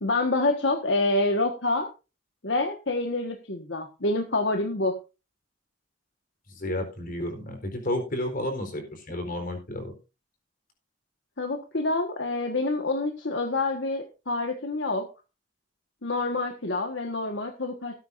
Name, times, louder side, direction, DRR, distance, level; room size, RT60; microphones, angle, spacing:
voice 1, 0.0-1.9 2.4-5.0 11.4-15.1 16.0-17.9, left 2 dB, 75° left, 4 dB, 1.6 m, -27 dB
voice 2, 6.5-9.9, left 1 dB, 50° left, 5 dB, 4.3 m, -31 dB
18.0 x 9.3 x 2.6 m, 0.29 s
head